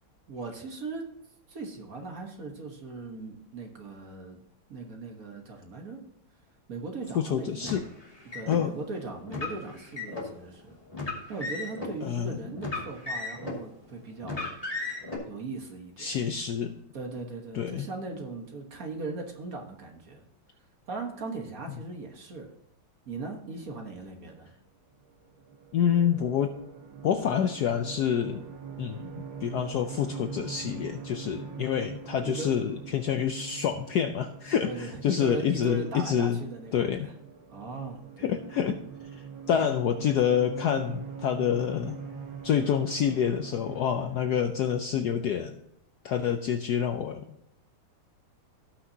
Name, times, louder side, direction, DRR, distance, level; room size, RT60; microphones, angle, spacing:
voice 1, 0.3-1.0 1.5-4.4 4.7-6.0 6.7-7.7 8.3-10.8 11.3-14.5 14.8-15.0 15.3-16.2 16.9-20.3 20.9-22.5 23.1-24.5 32.2-32.5 34.6-37.1 37.5-38.4, right 3 dB, 45° right, 2 dB, 1.6 m, -39 dB
voice 2, 7.2-7.8 8.5-8.7 12.0-12.4 16.0-16.7 17.5-17.8 25.7-26.5 27.0-28.4 28.8-36.4 36.7-37.1 38.2-38.8 39.5-42.0 42.4-45.6 46.0-47.2, left 8 dB, 70° left, 6 dB, 1.0 m, -27 dB
Car, 7.6-8.6 9.3-10.3 10.9-11.9 12.6-13.6 14.2-15.2, left 3 dB, 15° left, 2.4 m, -35 dB
sound 1, 25.0-44.5, right 6 dB, 65° right, 2.0 m, -43 dB
17.5 x 6.0 x 2.8 m, 0.78 s
omnidirectional pair, 2.3 m